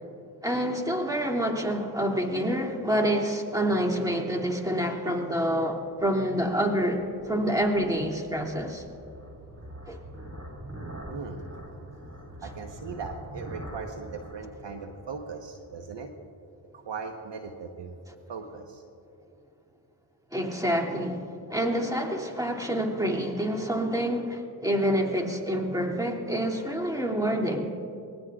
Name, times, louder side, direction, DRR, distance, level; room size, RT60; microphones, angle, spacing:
voice 1, 0.4-8.8 9.9-10.0 20.3-27.7, equal, 5° right, 1 dB, 2.6 m, -27 dB
sound 1, 6.5-15.8, right 1 dB, 35° right, 4.0 m, -44 dB
voice 2, 11.1-11.4 12.4-16.1 16.7-17.9 18.3-18.8, right 5 dB, 60° right, 5 dB, 1.2 m, -39 dB
24.0 x 19.0 x 2.4 m, 2.6 s
supercardioid pair, 40°, 48 cm